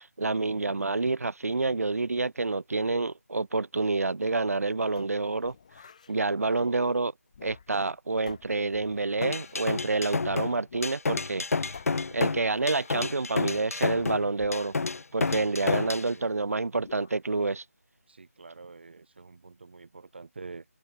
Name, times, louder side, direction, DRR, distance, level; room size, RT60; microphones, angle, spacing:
voice 1, 0.0-5.5 6.1-7.1 7.4-11.4 12.1-14.7 15.1-17.6, right 3 dB, 65° right, 0.8 m, -28 dB
sound 1, 5.0-6.2 7.3-7.9 8.3-9.7 10.7-11.0 11.3-11.4 11.7-13.2 14.4-14.9 15.3-16.4 16.8-17.2, left 6 dB, 25° left, 1.0 m, -50 dB
voice 2, 6.3-6.8 15.6-16.3 18.1-20.6, right 4 dB, 40° right, 0.4 m, -46 dB
sound 2, 9.2-16.1, left 4 dB, 65° left, 0.4 m, -30 dB
figure-of-eight pair, 165°, 9 cm